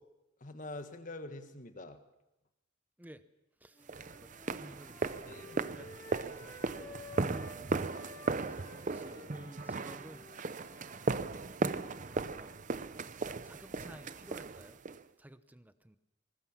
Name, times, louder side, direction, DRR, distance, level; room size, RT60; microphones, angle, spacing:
voice 1, 0.4-2.0 5.3-5.7, left 2 dB, 40° left, 8 dB, 1.6 m, -45 dB
sound 1, 3.7-7.6 7.9-12.3, left 2 dB, 20° left, 7.6 m, -53 dB
sound 2, 3.9-15.0, right 3 dB, 40° right, 0.7 m, -37 dB
voice 2, 4.2-5.9 7.1-7.8 8.4-10.3 12.0-12.5 13.2-14.8 15.2-16.0, right 1 dB, 10° right, 12 dB, 0.8 m, -55 dB
20.0 x 19.5 x 7.4 m, 0.93 s
head